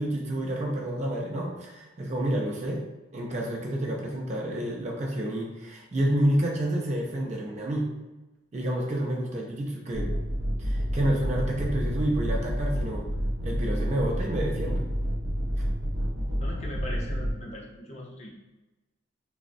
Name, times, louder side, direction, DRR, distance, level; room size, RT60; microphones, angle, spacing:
voice 1, 0.0-2.9 3.1-7.9 8.5-10.1 10.6-13.1 13.4-14.8, right 1 dB, 35° right, -1 dB, 0.4 m, -29 dB
sound 1, 9.9-17.3, equal, 70° right, 0.8 m, -29 dB
voice 2, 16.1-18.3, left 1 dB, 35° left, -2 dB, 0.5 m, -40 dB
3.4 x 2.0 x 2.5 m, 1.1 s
head